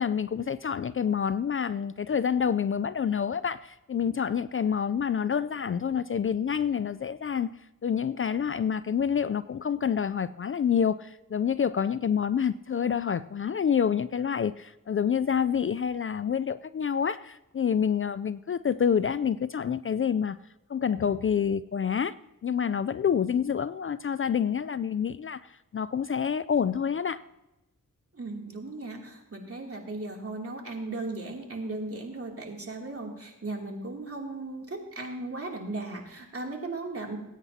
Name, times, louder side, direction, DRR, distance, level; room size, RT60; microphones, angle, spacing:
voice 1, 0.0-7.5 7.8-20.4 20.7-22.1 22.4-27.2, left 7 dB, 40° left, 15 dB, 0.4 m, -27 dB
voice 2, 28.1-37.2, right 2 dB, 45° right, 0 dB, 2.8 m, -37 dB
19.5 x 9.2 x 2.8 m, 0.96 s
cardioid pair, 65°, 32 cm